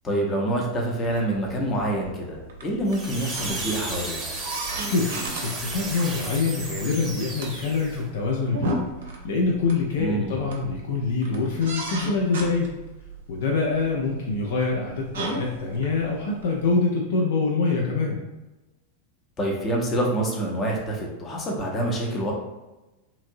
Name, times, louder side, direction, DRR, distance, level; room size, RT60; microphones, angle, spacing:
voice 1, 0.0-4.2 10.0-10.5 19.4-22.3, right 1 dB, 20° left, -1 dB, 0.7 m, -26 dB
sound 1, 1.0-16.7, right 2 dB, 60° right, 0.5 m, -36 dB
sound 2, 2.9-8.0, right 2 dB, 15° right, 0.9 m, -34 dB
voice 2, 4.9-5.2 5.4-8.7 9.2-12.7 13.3-18.2, left 4 dB, 55° left, -1 dB, 0.4 m, -25 dB
2.8 x 2.5 x 2.6 m, 1.1 s
figure-of-eight pair, 90°, 0 cm